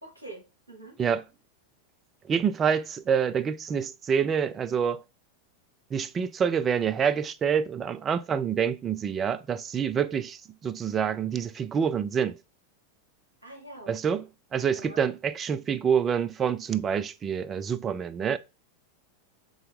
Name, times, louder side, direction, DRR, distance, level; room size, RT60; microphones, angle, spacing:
voice 1, 0.0-1.0 13.4-14.2 14.7-15.0, right 2 dB, 85° right, 1.4 m, -45 dB
voice 2, 2.3-5.0 5.9-12.4 13.9-18.4, right 7 dB, 25° right, 0.3 m, -27 dB
3.6 x 2.8 x 3.4 m
figure-of-eight pair, 90°, 0 cm